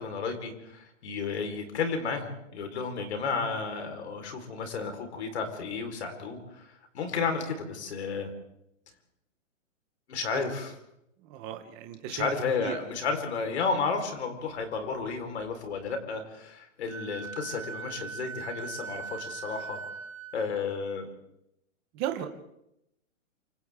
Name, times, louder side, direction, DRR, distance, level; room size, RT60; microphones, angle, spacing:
voice 1, 0.0-6.7 6.9-8.3 10.1-10.7 12.1-19.8 20.3-21.1, left 4 dB, 55° left, 5 dB, 4.3 m, -32 dB
voice 2, 11.2-12.3 12.6-12.8 21.9-22.3, right 11 dB, 15° right, 6 dB, 0.8 m, -36 dB
Wind instrument woodwind instrument, 16.9-20.4, right 5 dB, 90° right, 2.0 m, -40 dB
28.0 x 26.0 x 3.6 m, 0.81 s
hypercardioid pair, 175°, 39 cm